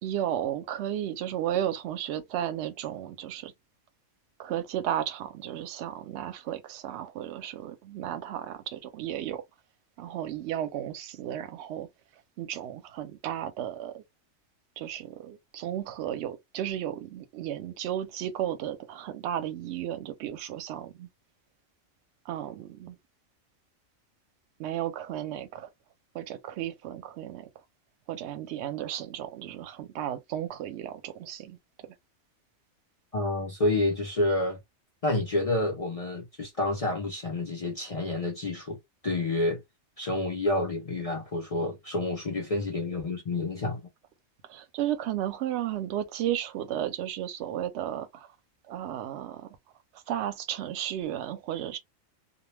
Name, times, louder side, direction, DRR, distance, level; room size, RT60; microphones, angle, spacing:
voice 1, 0.0-3.5 4.4-9.4 10.0-11.9 12.4-14.0 14.8-21.1 22.3-23.0 24.6-25.7 26.1-27.5 28.1-31.6 44.5-48.3 48.7-49.6 50.1-51.8, right 11 dB, 65° right, 0.8 m, -34 dB
voice 2, 33.1-34.6 35.0-38.8 39.0-39.6 40.0-43.8, left 2 dB, 60° left, 0.3 m, -29 dB
2.2 x 2.2 x 3.1 m
omnidirectional pair, 1.4 m